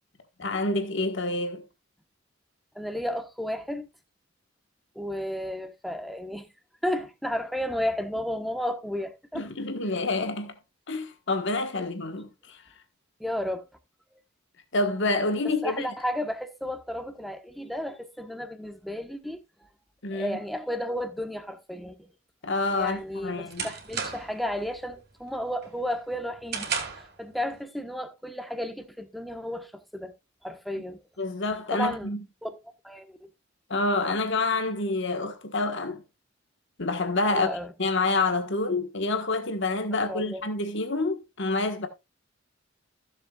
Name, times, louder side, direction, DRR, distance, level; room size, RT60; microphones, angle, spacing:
voice 1, 0.4-1.6 9.3-10.5 10.9-12.6 14.7-15.9 20.0-20.4 22.4-23.7 31.2-32.2 33.7-36.0 36.8-37.5 37.8-41.9, left 2 dB, 65° left, 1.4 m, -27 dB
voice 2, 2.7-3.9 4.9-6.5 6.8-9.5 11.7-11.9 13.2-13.6 15.6-19.4 20.1-22.1 22.7-30.1 30.4-31.0 31.7-32.1 32.4-32.5 32.8-33.3 37.3-37.7 40.1-40.4, equal, ahead, 1.1 m, -33 dB
sound 1, 22.7-24.5 24.9-25.2 25.6-27.2, right 6 dB, 55° right, 2.7 m, -34 dB
15.5 x 7.2 x 2.4 m
head